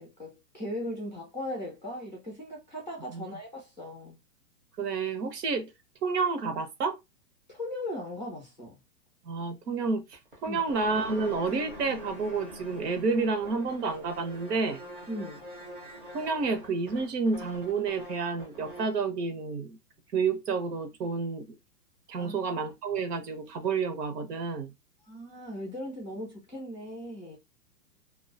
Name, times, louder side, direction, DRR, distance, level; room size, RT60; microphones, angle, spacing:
voice 1, 0.0-4.2 7.5-8.8 10.5-10.6 15.1-15.5 22.2-22.3 25.0-27.4, left 1 dB, 30° left, 0.4 m, -38 dB
voice 2, 4.8-5.7 6.0-7.0 9.2-14.8 16.1-19.8 20.1-21.5 22.1-24.7, right 4 dB, 70° right, 0.8 m, -30 dB
sound 1, 10.1-19.0, equal, 35° right, 0.5 m, -44 dB
2.3 x 2.2 x 2.4 m
hypercardioid pair, 180°, 49 cm